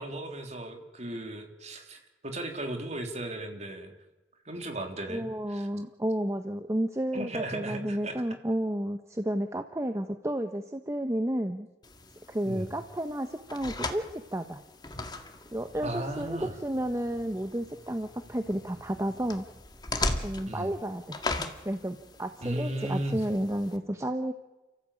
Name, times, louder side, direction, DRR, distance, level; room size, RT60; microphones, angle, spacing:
voice 1, 0.0-3.9 4.4-5.7 7.1-8.2 12.4-12.7 15.8-16.5 20.5-20.7 22.4-23.2, right 1 dB, 40° right, 4 dB, 3.4 m, -36 dB
voice 2, 5.1-11.7 12.3-14.6 15.5-19.5 20.2-24.3, right 1 dB, 15° right, 7 dB, 1.0 m, -32 dB
sound 1, 11.8-23.8, left 2 dB, 25° left, 1.9 m, -39 dB
30.0 x 15.0 x 8.5 m, 1.1 s
head